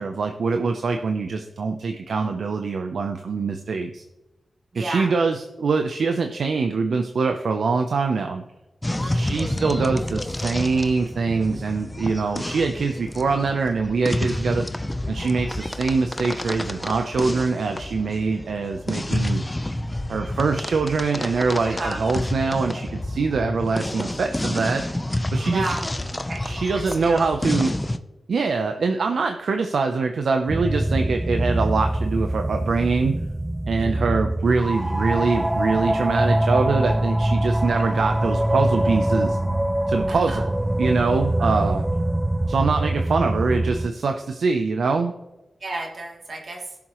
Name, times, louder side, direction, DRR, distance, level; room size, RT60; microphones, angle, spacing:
voice 1, 0.0-4.0 4.7-8.4 9.1-14.6 15.1-19.4 20.1-24.8 25.3-25.6 26.4-27.7 28.3-33.2 33.7-39.4 39.9-40.4 40.8-41.8 42.5-45.1, right 4 dB, 80° right, 5 dB, 0.7 m, -23 dB
voice 2, 4.7-5.1 8.9-9.3 21.6-22.0 25.5-25.9 26.3-26.6 26.9-27.3 33.8-34.1 37.8-37.9 40.1-40.4 41.4-41.7 45.6-46.8, right 2 dB, 60° right, -1 dB, 2.9 m, -33 dB
sound 1, 8.8-28.0, left 1 dB, 15° left, 0.7 m, -29 dB
sound 2, 30.5-43.9, right 1 dB, 15° right, 0.5 m, -24 dB
17.0 x 7.1 x 3.1 m, 1.0 s
cardioid pair, 70°, 0 cm